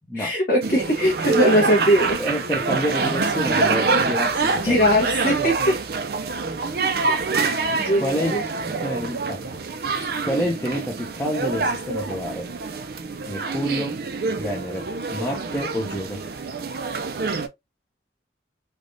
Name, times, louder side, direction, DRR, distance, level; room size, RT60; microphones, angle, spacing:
voice 1, 0.1-2.2 4.6-5.5 6.8-7.2 7.7-8.4 9.9-10.1, equal, 50° left, 0.9 m, -21 dB
sound 1, 0.6-17.5, right 4 dB, 55° right, 0.4 m, -26 dB
voice 2, 2.2-5.0 8.0-8.4 8.7-9.4 9.7-12.5 13.3-14.0 14.4-16.2, equal, 10° left, 0.6 m, -28 dB
3.3 x 2.3 x 2.6 m
head